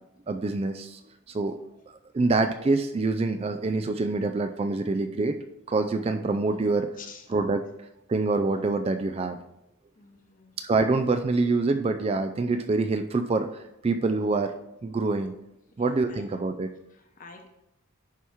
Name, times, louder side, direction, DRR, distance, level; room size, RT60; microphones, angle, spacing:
voice 1, 0.3-1.0 1.3-1.6 1.9-5.4 5.7-6.9 7.3-7.6 8.1-9.4 10.6-14.5 14.8-15.3 15.8-16.7, right 3 dB, 25° right, 8 dB, 0.3 m, -26 dB
voice 2, 7.0-7.3 10.0-10.5 15.8-16.2 16.9-17.5, left 5 dB, 35° left, 4 dB, 0.9 m, -48 dB
10.5 x 4.5 x 3.5 m, 0.86 s
head